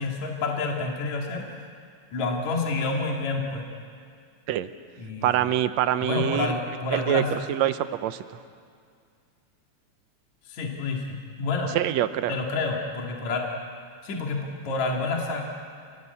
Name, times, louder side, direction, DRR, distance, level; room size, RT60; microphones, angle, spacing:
voice 1, 0.0-1.6 2.1-3.6 5.0-5.5 6.0-7.4 10.5-11.7 12.3-13.5 14.0-15.4, left 3 dB, 65° left, 0 dB, 3.6 m, -29 dB
voice 2, 5.2-6.6 6.9-8.2 11.7-12.3, right 12 dB, 70° right, 12 dB, 1.9 m, -25 dB
29.5 x 20.0 x 8.3 m, 2.2 s
omnidirectional pair, 3.5 m